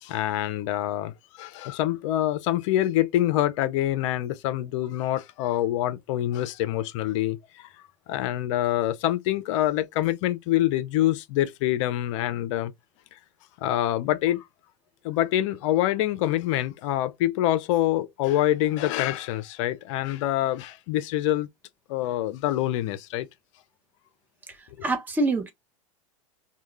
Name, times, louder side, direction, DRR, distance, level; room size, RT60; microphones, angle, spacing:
voice 1, 0.0-7.7 8.1-12.7 13.1-13.2 13.6-14.5 15.0-21.5 21.9-23.3, left 13 dB, 60° left, 0.5 m, -26 dB
voice 2, 24.6-25.5, right 2 dB, 10° right, 0.7 m, -26 dB
2.3 x 2.2 x 3.0 m
hypercardioid pair, 100°, 18 cm